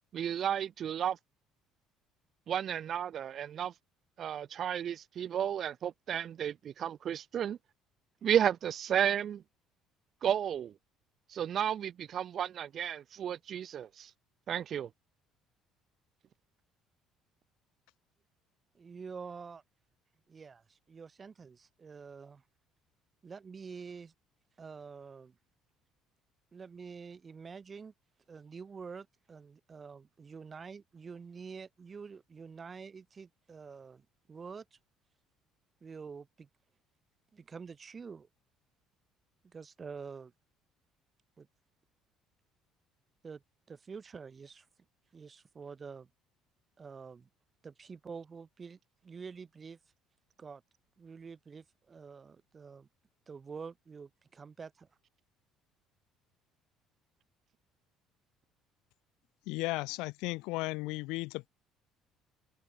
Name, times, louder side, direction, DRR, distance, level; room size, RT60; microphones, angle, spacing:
voice 1, 0.1-1.2 2.5-3.7 4.2-7.6 8.2-9.4 10.2-10.7 11.3-14.1 14.5-14.9, right 9 dB, 40° right, 1.0 m, -32 dB
voice 2, 18.7-19.6 20.3-22.4 23.2-24.1 24.6-25.4 26.5-27.9 28.3-34.8 35.8-36.5 37.3-38.3 39.4-40.3 41.4-41.5 43.2-43.4 43.7-44.7 45.1-46.1 46.8-47.3 47.6-49.8 50.4-50.6 51.0-52.9 53.3-54.9, right 5 dB, 25° right, 2.0 m, -47 dB
voice 3, 59.5-61.5, left 23 dB, 90° left, 0.5 m, -35 dB
cardioid pair, 140°, 0 cm